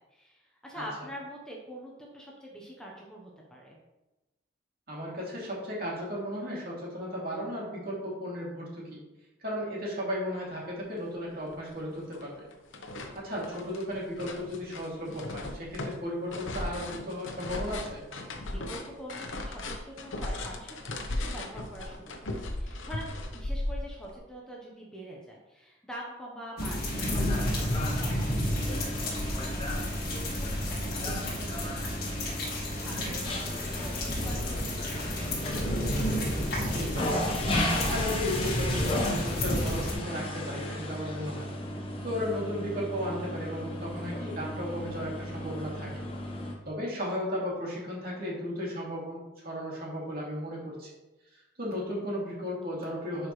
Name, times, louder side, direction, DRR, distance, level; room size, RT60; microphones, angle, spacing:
voice 1, 0.1-3.8 18.3-31.8 32.6-35.4, equal, 5° left, -3 dB, 1.0 m, -45 dB
voice 2, 4.9-9.0 9.4-12.3 13.1-18.0 28.2-28.5 36.6-37.2 37.7-41.5 42.0-45.9 46.6-50.9 51.3-53.3, equal, 50° right, -5 dB, 2.7 m, -35 dB
sound 1, 11.1-11.2 11.5-12.3 12.5-24.2, left 1 dB, 80° left, 0.9 m, -37 dB
sound 2, 26.6-39.9, left 1 dB, 55° left, 1.9 m, -31 dB
sound 3, 26.9-46.5, left 1 dB, 30° left, 1.2 m, -35 dB
10.0 x 4.9 x 3.2 m, 1.0 s
head